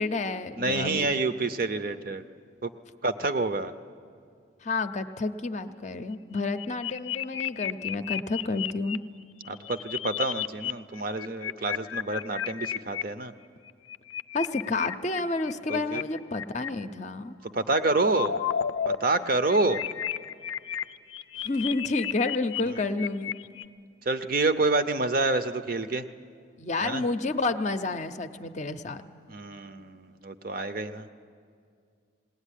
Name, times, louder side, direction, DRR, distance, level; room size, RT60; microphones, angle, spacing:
voice 1, 0.0-1.1 4.6-9.0 14.3-17.4 21.4-23.3 26.6-29.0, left 3 dB, 35° left, 9 dB, 0.6 m, -30 dB
voice 2, 0.6-2.3 2.6-2.7 3.0-3.7 9.4-13.3 15.7-16.0 17.5-18.4 19.0-19.8 22.7-22.8 24.1-26.1 26.8-27.0 29.3-31.1, right 2 dB, 45° right, 10 dB, 0.7 m, -28 dB
sound 1, 6.4-9.0 9.5-10.7 11.0-13.0 13.7-16.7 17.5-19.0 19.2-23.6, left 9 dB, 80° left, 0.5 m, -33 dB
20.0 x 17.5 x 10.0 m, 2.2 s
head